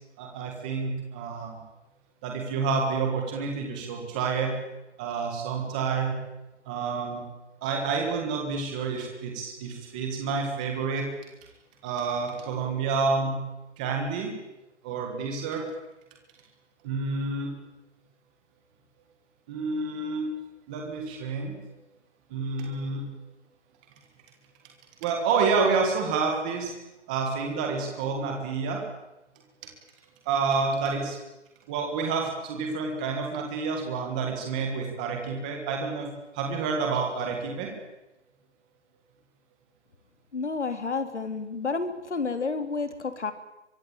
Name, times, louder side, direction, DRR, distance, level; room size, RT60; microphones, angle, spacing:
voice 1, 0.2-1.6 2.2-4.5 5.0-6.1 6.6-7.2 7.6-11.1 11.8-13.4 13.8-14.3 14.8-15.7 16.8-17.5 19.5-20.3 20.7-21.5 22.3-23.1 25.0-26.7 27.1-28.8 30.2-31.2 31.7-36.1 36.3-37.7, right 4 dB, 5° right, 2 dB, 1.7 m, -29 dB
voice 2, 40.3-43.3, left 4 dB, 70° left, 8 dB, 3.7 m, -30 dB
23.5 x 23.5 x 9.0 m, 0.95 s
hypercardioid pair, 180°, 36 cm